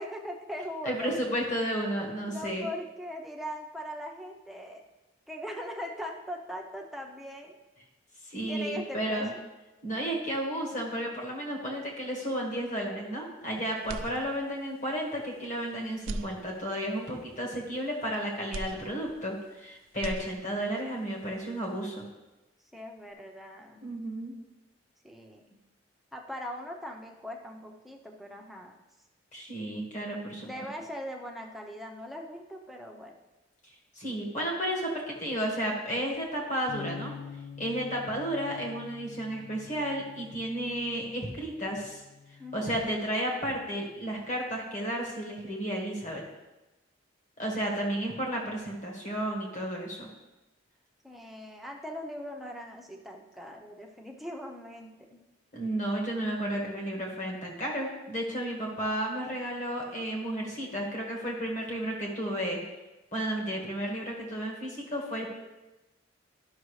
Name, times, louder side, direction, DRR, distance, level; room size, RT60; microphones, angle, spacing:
voice 1, 0.0-1.2 2.3-4.8 5.3-7.5 8.5-9.2 22.7-23.9 25.0-25.4 26.1-28.8 30.4-33.2 42.4-42.7 51.0-55.2, equal, ahead, 0 dB, 0.7 m, -40 dB
voice 2, 0.8-2.7 8.2-9.3 9.8-22.0 23.8-24.3 29.3-30.5 33.9-37.1 37.6-42.0 42.3-46.2 47.4-50.1 55.5-62.6 63.1-65.3, right 1 dB, 40° left, -1 dB, 1.6 m, -32 dB
sound 1, 13.8-14.8 15.2-15.3 15.9-17.0 18.5-19.6 19.9-20.8, right 2 dB, 90° right, 0.4 m, -40 dB
sound 2, 36.7-42.9, left 6 dB, 70° left, 0.6 m, -46 dB
12.0 x 5.9 x 3.2 m, 1.1 s
head